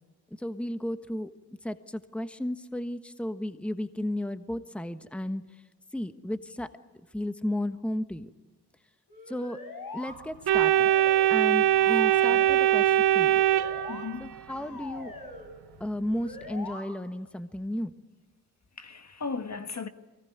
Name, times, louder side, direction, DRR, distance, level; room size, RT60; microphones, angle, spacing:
voice 1, 0.4-1.3 1.6-5.4 5.9-6.7 7.1-8.3 9.3-9.6 9.9-10.9 11.3-13.4 14.2-15.1 15.8-17.9, left 1 dB, 5° left, 1.3 m, -33 dB
sound 1, 9.1-10.2 10.5-11.4 11.7-12.8 13.2-14.0 14.5-15.5 16.0-16.8, left 3 dB, 60° left, 6.9 m, -42 dB
Organ, 10.5-14.4, right 12 dB, 75° right, 0.8 m, -22 dB
voice 2, 11.8-12.5 13.9-14.4 18.8-19.9, left 5 dB, 45° left, 1.6 m, -37 dB
24.5 x 20.0 x 9.5 m
supercardioid pair, 45°, 39 cm